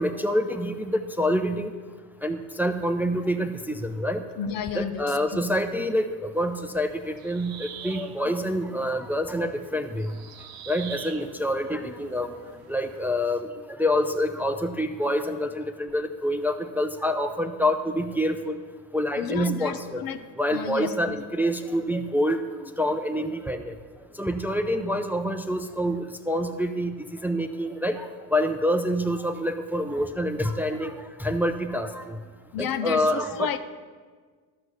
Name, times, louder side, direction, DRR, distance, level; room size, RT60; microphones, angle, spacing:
voice 1, 0.0-1.7 2.2-4.2 4.7-10.1 10.7-12.3 12.7-13.5 13.8-18.6 18.9-20.0 20.4-22.4 22.8-23.7 24.2-32.2 32.6-33.5, equal, 5° right, 6 dB, 0.5 m, -27 dB
voice 2, 4.4-5.4 19.2-20.2 20.5-21.2 32.5-33.6, left 7 dB, 55° left, 11 dB, 0.7 m, -31 dB
sound 1, 6.3-13.4, right 8 dB, 60° right, 0.9 m, -46 dB
12.5 x 4.6 x 6.5 m, 1.5 s
cardioid pair, 85°, 42 cm